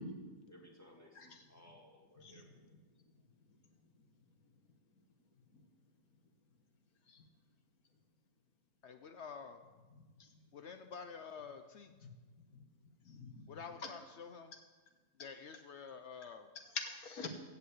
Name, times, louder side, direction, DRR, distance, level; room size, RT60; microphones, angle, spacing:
voice 1, 0.5-2.7, equal, 10° left, -1 dB, 1.9 m, -60 dB
voice 2, 8.8-9.6 10.5-11.9 13.5-14.5 15.2-16.5, left 6 dB, 80° left, 7 dB, 0.6 m, -49 dB
voice 3, 9.9-10.3 12.0-12.1 12.5-12.6 13.0-13.9 16.6-17.3, left 5 dB, 55° left, 5 dB, 1.6 m, -46 dB
16.0 x 5.7 x 7.9 m, 1.3 s
omnidirectional pair, 2.0 m